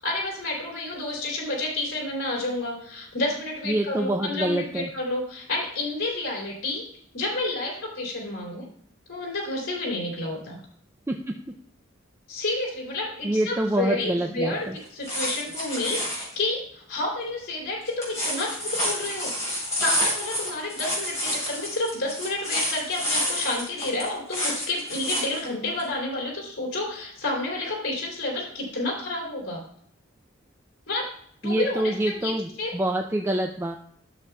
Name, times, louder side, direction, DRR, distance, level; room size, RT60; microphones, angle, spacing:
voice 1, 0.0-6.8 7.1-8.6 9.1-10.6 12.3-29.6 30.9-31.1 31.4-31.9 32.2-32.3 32.6-32.7, left 2 dB, 75° left, -4 dB, 3.1 m, -30 dB
voice 2, 3.7-4.9 11.1-11.5 13.2-14.8 31.4-33.8, right 1 dB, 10° right, 2 dB, 0.4 m, -26 dB
sound 1, 14.8-16.3 17.9-25.4 25.8-25.9, equal, 15° left, 3.9 m, -29 dB
12.0 x 7.0 x 2.3 m, 0.64 s
head